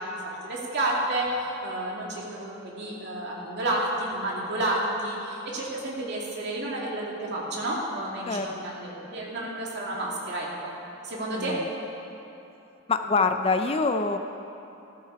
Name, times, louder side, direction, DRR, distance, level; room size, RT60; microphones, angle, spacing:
voice 1, 0.0-10.7 11.0-11.6, right 1 dB, 55° right, -3 dB, 2.6 m, -30 dB
voice 2, 12.9-14.2, left 4 dB, 30° left, 8 dB, 0.4 m, -25 dB
14.5 x 13.5 x 4.7 m, 2.9 s
head